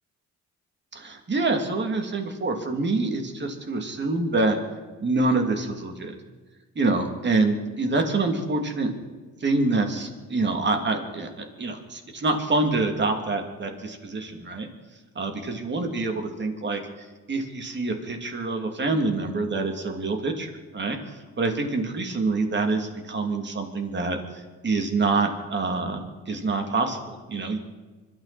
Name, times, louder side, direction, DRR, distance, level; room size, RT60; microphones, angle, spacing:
voice 1, 0.9-4.6 5.0-6.1 6.7-8.9 9.4-14.7 15.1-15.3 15.6-16.8 17.3-27.6, right 3 dB, 35° right, 4 dB, 2.9 m, -26 dB
25.0 x 13.0 x 4.4 m, 1.3 s
cardioid pair, 90°, 30 cm